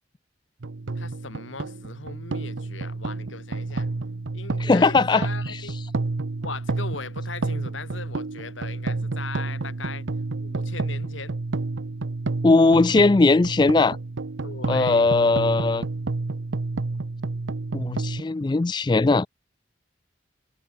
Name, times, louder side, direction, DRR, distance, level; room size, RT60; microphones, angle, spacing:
sound 1, 0.6-18.2, right 3 dB, 80° right, 0.8 m, -30 dB
voice 1, 0.9-3.9 4.3-5.8 6.4-10.1 10.4-11.4 14.4-15.1, left 4 dB, 90° left, 2.3 m, -39 dB
voice 2, 4.6-5.6 12.4-14.0 14.7-15.9 17.7-19.3, left 3 dB, 25° left, 0.3 m, -19 dB
head